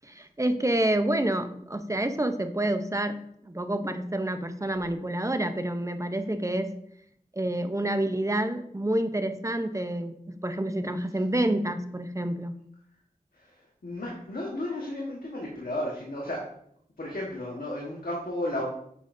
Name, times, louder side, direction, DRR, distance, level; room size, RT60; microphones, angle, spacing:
voice 1, 0.0-3.2 3.4-6.7 7.3-12.5, right 1 dB, 20° right, 8 dB, 0.7 m, -28 dB
voice 2, 13.8-16.5 17.0-18.7, left 1 dB, 70° left, -2 dB, 1.4 m, -33 dB
9.1 x 6.1 x 2.7 m, 0.70 s
wide cardioid pair, 45°, 15 cm